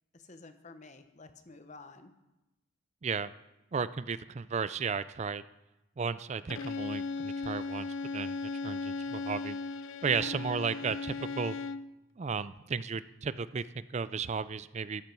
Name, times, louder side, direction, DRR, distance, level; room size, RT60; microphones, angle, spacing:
voice 1, 0.1-2.1 10.1-10.4, left 3 dB, 35° left, 9 dB, 0.9 m, -50 dB
voice 2, 3.7-5.4 6.0-8.4 8.6-9.6 10.0-11.6 12.2-15.0, right 5 dB, 30° right, 16 dB, 0.3 m, -34 dB
Bowed string instrument, 6.5-11.9, left 4 dB, 65° left, 0.4 m, -37 dB
13.5 x 13.0 x 4.6 m, 0.98 s
head